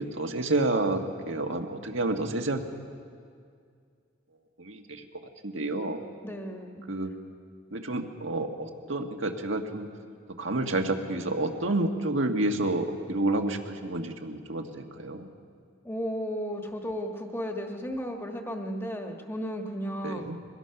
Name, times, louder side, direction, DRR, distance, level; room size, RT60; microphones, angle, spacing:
voice 1, 0.0-2.6 4.6-5.0 5.4-6.0 6.9-7.1 7.7-9.9 10.4-15.3 20.0-20.4, right 2 dB, 85° right, 4 dB, 1.6 m, -29 dB
voice 2, 6.2-6.8 15.8-20.3, equal, 10° left, 3 dB, 1.4 m, -34 dB
22.5 x 21.0 x 5.9 m, 2.2 s
head